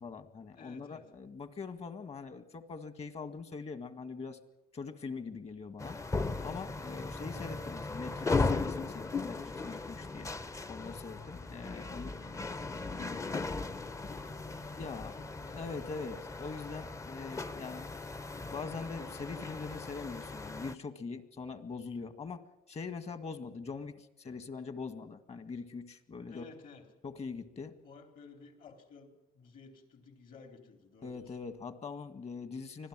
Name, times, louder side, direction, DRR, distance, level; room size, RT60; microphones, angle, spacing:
voice 1, 0.0-4.4 4.7-6.0 6.4-10.3 10.7-12.1 14.8-15.1 15.5-17.8 18.5-22.4 22.7-26.4 27.0-27.7 31.0-32.9, left 4 dB, 40° left, 10 dB, 1.9 m, -42 dB
voice 2, 0.5-1.1 11.3-16.1 26.3-26.9 27.8-31.4, left 4 dB, 55° left, 5 dB, 4.2 m, -55 dB
sound 1, 5.8-20.7, left 3 dB, 20° left, 0.8 m, -37 dB
25.0 x 16.5 x 7.6 m, 0.84 s
cardioid pair, 110°, 17 cm